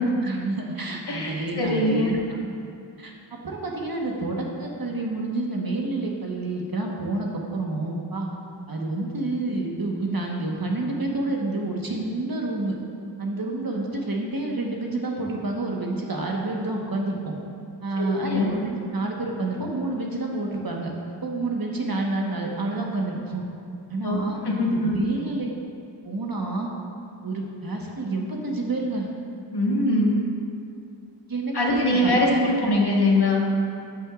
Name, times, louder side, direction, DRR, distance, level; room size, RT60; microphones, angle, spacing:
voice 1, 0.2-2.2 3.0-8.3 8.7-12.8 13.2-17.2 17.8-20.9 21.2-23.4 23.9-24.4 24.7-25.5 26.0-26.7 27.2-29.1 31.3-32.7, right 2 dB, 50° right, -1 dB, 1.3 m, -28 dB
voice 2, 1.1-2.1 18.0-18.5 24.0-25.0 29.5-30.2 31.5-33.4, left 1 dB, 60° left, -2 dB, 1.5 m, -22 dB
13.0 x 6.2 x 2.5 m, 2.5 s
cardioid pair, 45°, 44 cm